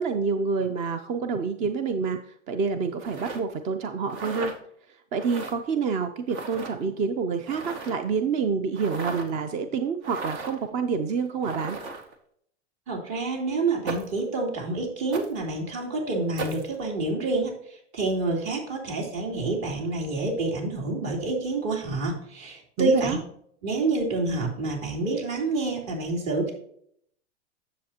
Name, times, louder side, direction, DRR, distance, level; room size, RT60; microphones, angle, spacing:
voice 1, 0.0-2.2 2.5-4.5 5.1-11.8 22.8-23.2, right 5 dB, 20° right, 9 dB, 0.4 m, -27 dB
sound 1, 3.0-3.4 4.1-4.6 5.2-5.5 6.3-6.7 7.4-8.1 8.7-9.3 10.0-10.6 11.4-12.1 13.9-14.2 15.1-15.3 16.4-16.6, right 4 dB, 65° right, 1.9 m, -35 dB
voice 2, 12.9-17.5 17.9-23.2 23.6-26.5, right 3 dB, 45° right, -1 dB, 3.4 m, -28 dB
10.0 x 7.3 x 2.9 m, 0.67 s
hypercardioid pair, 130°, 36 cm